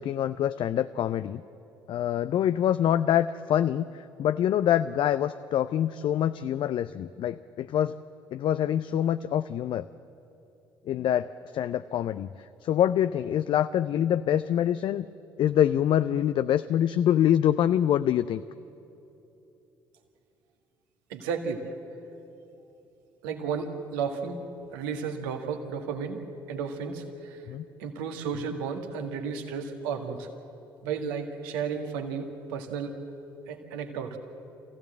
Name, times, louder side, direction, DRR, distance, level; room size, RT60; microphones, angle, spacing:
voice 1, 0.0-1.4 1.9-8.0 8.3-9.8 10.9-15.1 15.4-18.4 27.5-27.6, left 10 dB, 45° left, 13 dB, 0.4 m, -25 dB
voice 2, 21.1-21.6 23.2-24.4 24.7-26.2 26.5-27.4 27.8-30.3 30.8-33.0 33.5-34.2, right 6 dB, 70° right, 5 dB, 1.7 m, -33 dB
26.5 x 15.5 x 7.7 m, 3.0 s
figure-of-eight pair, 50°, 12 cm